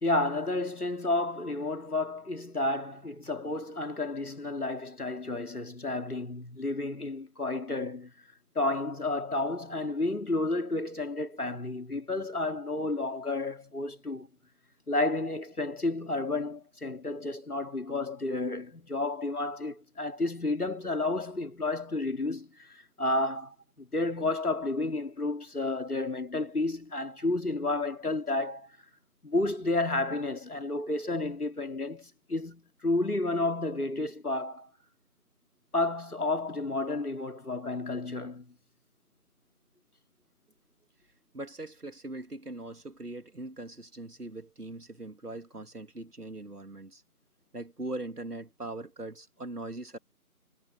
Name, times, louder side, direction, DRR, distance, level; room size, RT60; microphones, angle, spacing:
voice 1, 0.0-8.1 8.5-14.3 14.9-28.8 29.2-34.7 35.7-38.5, left 2 dB, 75° left, 2.5 m, -31 dB
voice 2, 41.3-47.0 47.5-50.0, right 2 dB, 90° right, 2.4 m, -41 dB
figure-of-eight pair, 170°, 45 cm